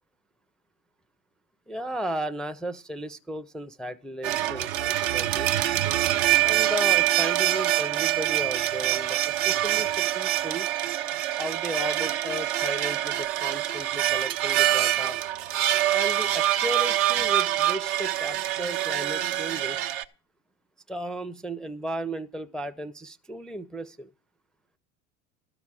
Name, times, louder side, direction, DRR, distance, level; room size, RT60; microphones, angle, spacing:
voice 1, 1.7-5.5 6.4-10.7 11.4-15.2 15.9-19.9 20.9-24.1, right 1 dB, ahead, 0.4 m, -35 dB
sound 1, 4.2-20.0, right 13 dB, 70° right, 0.8 m, -25 dB
12.5 x 4.8 x 8.7 m
supercardioid pair, 95°, 39 cm